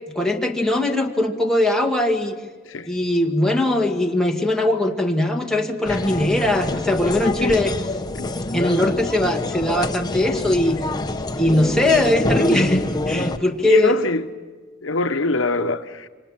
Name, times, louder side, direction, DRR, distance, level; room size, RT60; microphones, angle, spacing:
voice 1, 0.1-2.3 2.9-7.8 8.5-10.8 11.4-12.8 13.1-14.0, left 1 dB, 5° left, 1.8 m, -20 dB
sound 1, 5.8-13.4, left 2 dB, 20° left, 0.9 m, -25 dB
voice 2, 13.6-14.2 14.8-16.1, left 3 dB, 75° left, 1.0 m, -23 dB
27.5 x 25.5 x 7.4 m
head